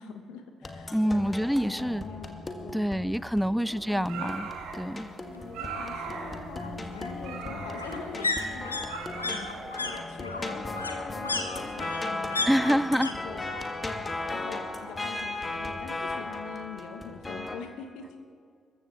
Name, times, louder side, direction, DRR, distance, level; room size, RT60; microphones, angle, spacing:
voice 1, 0.0-1.2 1.8-3.1 3.4-4.4 5.2-9.5 9.8-13.4 14.3-18.2, left 6 dB, 65° left, 1.3 m, -44 dB
sound 1, 0.6-17.6, left 2 dB, 25° left, 1.7 m, -37 dB
voice 2, 0.9-2.0 2.7-4.5 4.7-5.1 12.5-13.1, equal, ahead, 0.4 m, -26 dB
sound 2, 2.2-2.3 2.7-2.8 3.1-4.1 5.3-13.1 13.4-14.0 14.2-15.3 15.6-15.7, left 3 dB, 85° left, 0.6 m, -35 dB
sound 3, 3.9-10.0, right 5 dB, 60° right, 1.7 m, -41 dB
26.5 x 14.5 x 3.4 m
figure-of-eight pair, 45°, 0 cm